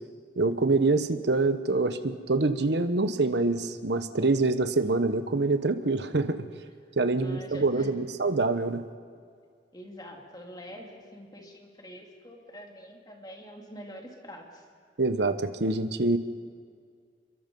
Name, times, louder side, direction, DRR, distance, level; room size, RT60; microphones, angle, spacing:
voice 1, 0.4-6.5 7.0-8.8 15.0-16.2, right 3 dB, 70° right, 10 dB, 1.1 m, -25 dB
voice 2, 7.2-8.0 9.7-14.6, equal, 25° left, 1 dB, 2.7 m, -45 dB
27.0 x 22.5 x 5.4 m, 2.1 s
head